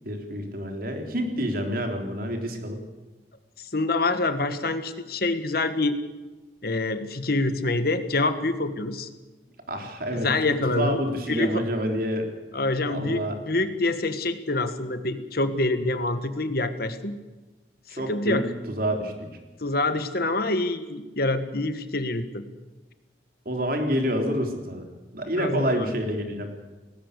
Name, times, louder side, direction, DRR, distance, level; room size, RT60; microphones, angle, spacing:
voice 1, 0.1-2.8 9.7-10.3 10.7-12.3 12.9-13.4 17.9-18.4 18.7-19.3 23.5-24.9 25.1-26.5, equal, 50° right, 4 dB, 3.7 m, -28 dB
voice 2, 3.6-6.0 6.6-9.1 10.2-11.0 11.3-11.6 12.5-17.2 17.9-18.5 19.6-22.4 25.4-25.9, left 2 dB, 55° left, 10 dB, 1.5 m, -26 dB
19.0 x 17.0 x 8.3 m, 1.2 s
head